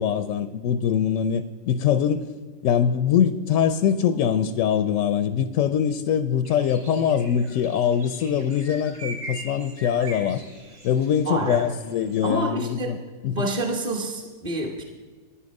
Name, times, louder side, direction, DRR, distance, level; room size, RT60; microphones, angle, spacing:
voice 1, 0.0-2.3 2.6-10.4 10.8-13.0 13.2-13.4, left 8 dB, 70° left, 11 dB, 0.8 m, -23 dB
sound 1, 6.4-12.3, right 2 dB, 50° right, 2.8 m, -42 dB
voice 2, 11.2-11.7 12.2-12.9 13.3-14.8, right 1 dB, 30° right, -1 dB, 1.0 m, -28 dB
13.0 x 9.9 x 5.3 m, 1.4 s
omnidirectional pair, 1.7 m